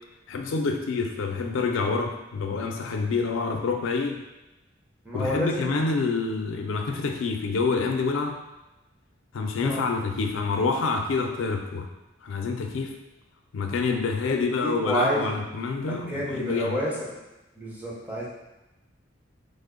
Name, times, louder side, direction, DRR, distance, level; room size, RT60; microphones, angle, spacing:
voice 1, 0.3-4.2 5.1-8.4 9.3-11.9 12.2-12.9 13.5-16.8, left 4 dB, 75° left, 4 dB, 0.4 m, -27 dB
voice 2, 5.0-5.8 9.6-9.8 14.6-15.4 15.9-17.2 17.6-18.3, equal, 10° right, -6 dB, 0.6 m, -29 dB
3.3 x 2.0 x 3.7 m, 1.0 s
head